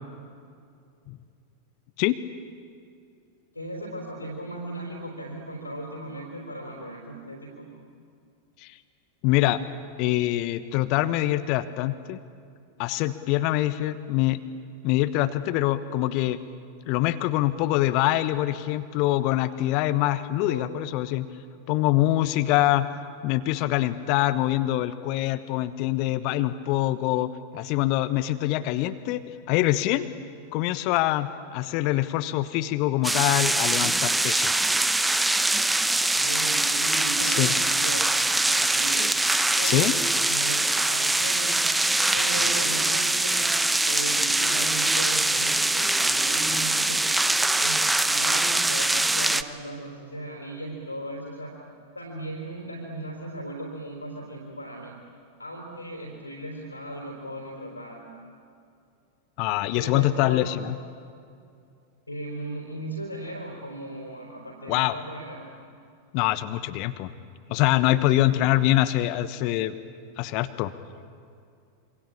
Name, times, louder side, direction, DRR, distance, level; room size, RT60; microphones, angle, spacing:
voice 1, 3.5-7.7 20.4-20.7 36.0-39.0 39.6-41.7 42.1-43.5 43.9-47.2 47.6-51.6 51.9-55.0 55.4-58.0 59.8-60.5 62.1-65.5 68.2-68.4, right 1 dB, 85° left, 1 dB, 4.0 m, -37 dB
voice 2, 9.2-9.6 10.0-12.2 12.8-14.4 14.8-16.4 16.9-21.3 21.7-22.9 23.2-29.2 29.5-30.1 30.5-34.5 37.2-37.5 39.6-39.9 59.4-60.7 64.7-65.0 66.1-67.1 67.5-69.7 70.2-70.7, left 15 dB, 45° left, 12 dB, 1.2 m, -24 dB
sound 1, 33.0-49.4, right 2 dB, 5° right, 1.0 m, -23 dB
27.5 x 25.0 x 8.6 m, 2.4 s
figure-of-eight pair, 90°, 0 cm